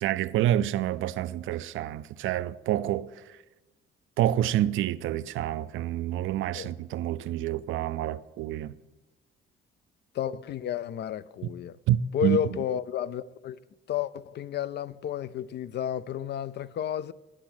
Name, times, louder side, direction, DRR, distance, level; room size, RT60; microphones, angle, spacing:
voice 1, 0.0-3.4 4.2-8.8 11.9-12.4, right 12 dB, 80° right, 0.5 m, -28 dB
voice 2, 10.1-11.8 12.1-13.6 13.9-17.1, left 9 dB, 60° left, 0.4 m, -31 dB
10.0 x 8.8 x 6.1 m
cardioid pair, 90°, 20 cm